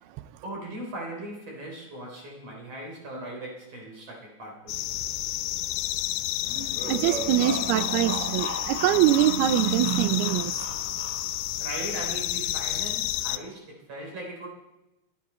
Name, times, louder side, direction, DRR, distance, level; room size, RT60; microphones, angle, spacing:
voice 1, 0.4-4.8 11.6-14.5, right 1 dB, 40° right, -1 dB, 4.2 m, -38 dB
sound 1, 4.7-13.4, left 15 dB, 85° left, 2.7 m, -30 dB
sound 2, 6.4-11.6, equal, 15° left, 1.7 m, -37 dB
voice 2, 6.8-10.7, right 12 dB, 80° right, 14 dB, 2.6 m, -23 dB
22.5 x 10.0 x 4.3 m, 0.97 s
omnidirectional pair, 4.6 m